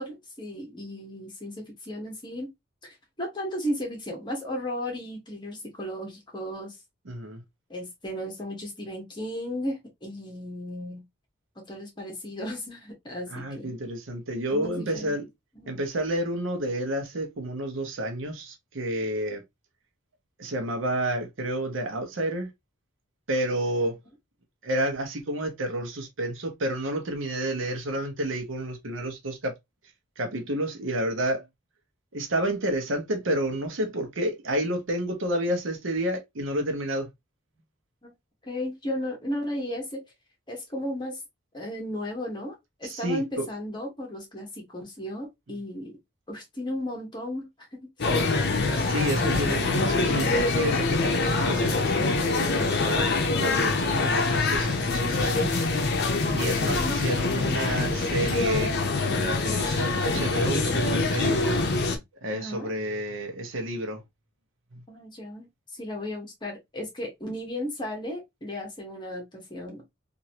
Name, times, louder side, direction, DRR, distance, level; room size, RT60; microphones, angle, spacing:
voice 1, 0.0-2.5 2.8-6.8 7.7-11.0 11.7-13.7 14.5-15.1 15.6-15.7 38.0-38.1 38.4-40.0 40.5-41.2 41.5-46.0 46.3-48.1 56.7-57.2 62.3-62.7 64.9-69.8, left 1 dB, 25° left, 1.2 m, -35 dB
voice 2, 7.0-7.4 13.3-15.3 15.7-19.4 20.4-22.5 23.3-24.0 24.6-29.5 30.2-31.5 32.1-37.1 42.8-43.5 48.7-55.6 56.3-58.8 59.1-61.4 62.2-64.0 64.7-64.8, right 1 dB, 85° right, 0.9 m, -30 dB
sound 1, 48.0-62.0, left 3 dB, 60° left, 0.6 m, -25 dB
3.0 x 2.6 x 2.7 m
head